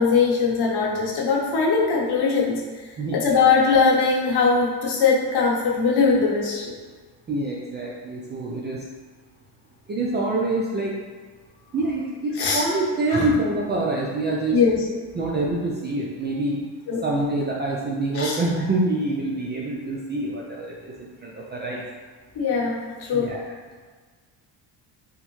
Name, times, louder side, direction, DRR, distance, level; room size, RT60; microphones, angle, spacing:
voice 1, 0.0-2.6 3.1-6.7 12.4-12.6 13.1-13.3 14.5-14.8 16.9-17.0 18.1-18.4 22.3-23.3, left 5 dB, 50° left, -3 dB, 0.9 m, -21 dB
voice 2, 7.3-8.8 9.9-11.0 11.7-14.6 15.1-16.6 17.0-21.8 23.1-23.4, right 2 dB, 25° right, -3 dB, 0.3 m, -26 dB
3.5 x 2.0 x 3.1 m, 1.5 s
supercardioid pair, 65°, 49 cm